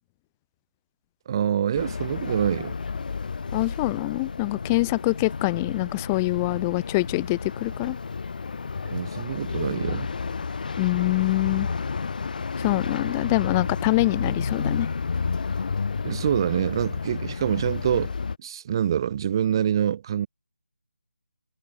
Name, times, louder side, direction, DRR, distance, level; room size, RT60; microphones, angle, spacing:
voice 1, 1.3-2.7 8.8-10.1 16.0-18.1 18.4-20.3, right 9 dB, 25° right, 0.8 m, -25 dB
sound 1, 1.7-18.4, left 5 dB, 45° left, 1.3 m, -31 dB
voice 2, 3.5-8.0 10.8-11.7 12.6-14.9, left 24 dB, 10° left, 1.0 m, -25 dB
figure-of-eight pair, 170°, 6 cm